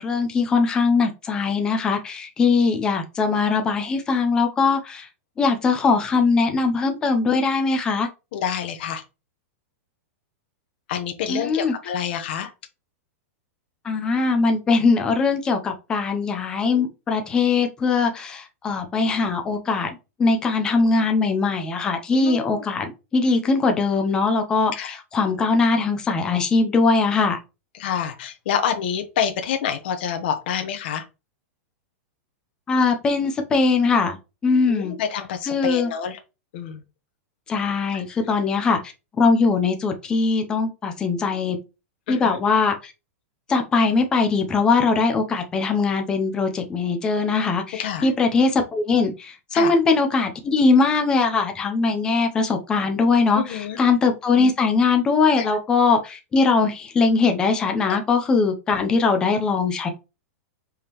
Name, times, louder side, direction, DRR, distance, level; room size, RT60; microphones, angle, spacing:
voice 1, 0.0-5.1 5.4-8.1 11.3-11.7 13.8-19.9 20.2-27.4 32.7-34.2 34.4-34.9 35.5-35.9 37.5-38.8 39.2-41.6 42.1-42.9 43.5-53.4 53.8-59.9, left 4 dB, 10° left, 0.5 m, -21 dB
voice 2, 8.3-9.0 10.9-12.5 22.1-22.6 24.8-25.0 27.7-31.0 34.7-36.2 36.5-36.8 37.9-38.0 42.1-42.4 47.7-48.1 49.5-49.7 53.3-53.8 55.4-55.5 57.9-58.0, left 8 dB, 45° left, 0.9 m, -27 dB
5.1 x 3.5 x 2.9 m
supercardioid pair, 180°, 8 cm